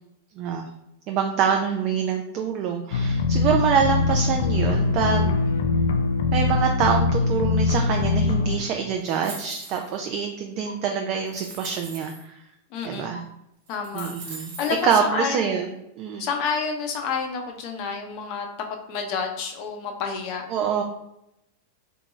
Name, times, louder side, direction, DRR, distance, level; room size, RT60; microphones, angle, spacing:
voice 1, 0.4-0.7 1.1-5.3 6.3-12.4 12.8-13.2 13.9-14.5 14.8-15.7 16.0-16.3 20.5-20.8, right 7 dB, 45° right, 3 dB, 0.4 m, -25 dB
sound 1, 2.9-8.6, left 4 dB, 80° left, 0.4 m, -22 dB
sound 2, 9.0-10.0 10.7-10.8 11.3-12.2 13.1-13.2 13.7-14.9, right 3 dB, 70° right, 1.1 m, -40 dB
voice 2, 12.7-13.2 13.7-15.4 16.2-20.5, left 5 dB, 50° left, 3 dB, 0.7 m, -29 dB
3.7 x 2.3 x 3.1 m, 0.84 s
hypercardioid pair, 125°, 0 cm